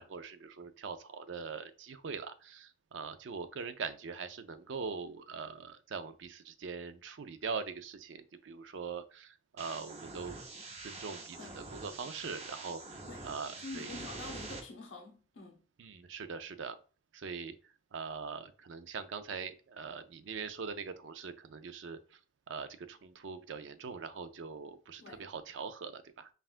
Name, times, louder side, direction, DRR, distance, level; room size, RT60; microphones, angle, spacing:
voice 1, 0.0-10.4 10.8-13.9 15.8-16.8 17.1-17.5 17.9-22.2 22.5-26.3, right 5 dB, 70° right, 0.4 m, -42 dB
sound 1, 9.6-14.6, right 3 dB, 30° right, 0.7 m, -46 dB
voice 2, 13.6-15.6 25.0-25.3, left 2 dB, 75° left, 0.8 m, -46 dB
5.5 x 2.4 x 2.4 m
head